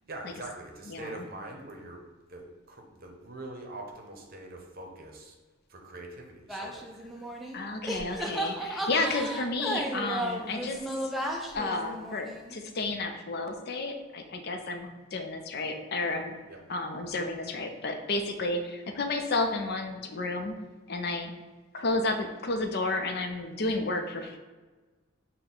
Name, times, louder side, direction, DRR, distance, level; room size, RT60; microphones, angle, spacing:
voice 1, 0.1-2.0 2.3-5.3 5.7-6.9 16.5-16.6, right 2 dB, 50° right, 1 dB, 0.8 m, -43 dB
voice 2, 0.9-1.2 7.5-11.0 11.5-16.4 16.7-20.5 20.9-21.3 21.7-24.4, left 2 dB, 55° left, 5 dB, 0.5 m, -31 dB
sound 1, 6.5-7.6 7.9-12.6, right 1 dB, ahead, 0.4 m, -34 dB
6.1 x 2.2 x 3.8 m, 1.3 s
head